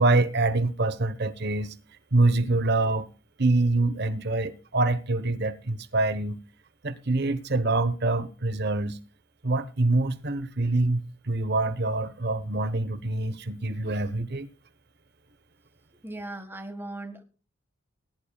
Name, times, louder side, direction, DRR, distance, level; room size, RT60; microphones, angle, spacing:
voice 1, 0.0-1.7 2.1-3.1 3.4-6.4 6.8-9.0 9.4-14.5, right 2 dB, 55° right, 1.0 m, -25 dB
voice 2, 16.0-17.2, right 2 dB, 10° right, 1.5 m, -38 dB
19.0 x 10.5 x 2.3 m
head